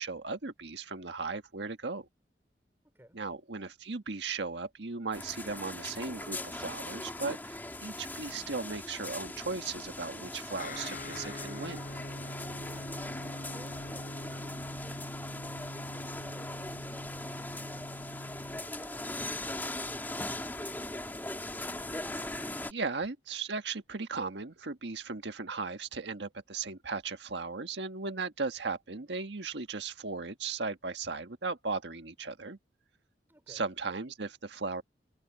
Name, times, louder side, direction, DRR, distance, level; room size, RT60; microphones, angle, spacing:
voice 1, 0.0-2.1 3.1-11.8 22.7-32.6 33.5-34.8, right 4 dB, 85° right, 1.5 m, -37 dB
voice 2, 2.8-3.2 12.6-13.2 13.5-21.0 33.3-33.7, equal, 15° right, 4.4 m, -57 dB
sound 1, 5.1-22.7, left 1 dB, 10° left, 2.5 m, -40 dB
Guitar, 10.6-18.6, left 1 dB, 55° left, 4.5 m, -43 dB
head